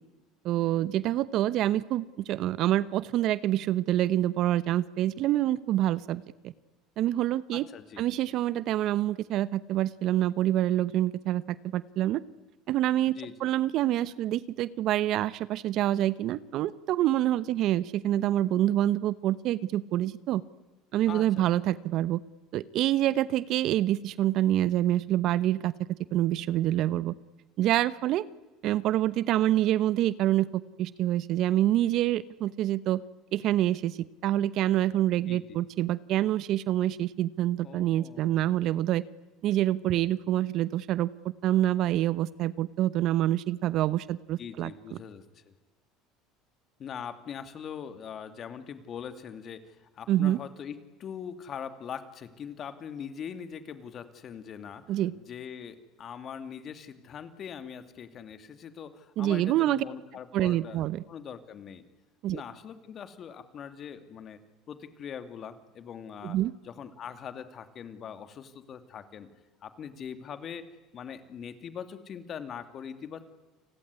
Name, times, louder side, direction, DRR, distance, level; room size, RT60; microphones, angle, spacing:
voice 1, 0.4-6.5 7.0-7.7 8.0-12.2 12.7-20.4 20.9-22.2 22.5-27.1 27.6-28.3 28.6-33.0 33.3-39.0 39.4-41.1 41.4-45.0 50.1-50.4 54.9-55.1 59.2-59.8 60.3-61.0 62.2-62.4 66.2-66.5, right 13 dB, 60° right, 18 dB, 0.9 m, -26 dB
voice 2, 7.5-8.0 13.1-13.3 21.1-21.5 35.3-35.6 37.6-38.5 44.4-45.5 46.8-60.8 61.1-61.8 62.3-64.4 64.7-66.4 66.6-69.3 69.6-70.7 70.9-73.2, left 7 dB, 40° left, 10 dB, 2.7 m, -42 dB
29.5 x 20.0 x 9.8 m, 1.2 s
supercardioid pair, 105°, 0 cm